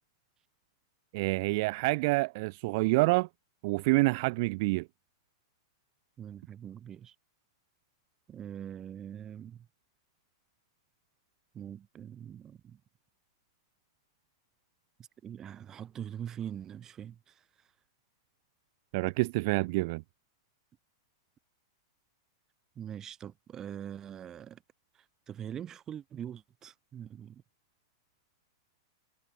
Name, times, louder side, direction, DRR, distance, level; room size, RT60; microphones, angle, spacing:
voice 1, 1.1-3.3 3.6-4.9 18.9-20.0, right 24 dB, 55° right, 1.4 m, -27 dB
voice 2, 6.2-7.1 8.3-9.7 11.5-12.8 15.2-17.4 22.7-24.6 25.3-27.4, right 9 dB, 25° right, 3.2 m, -43 dB
hypercardioid pair, 135°, 2 cm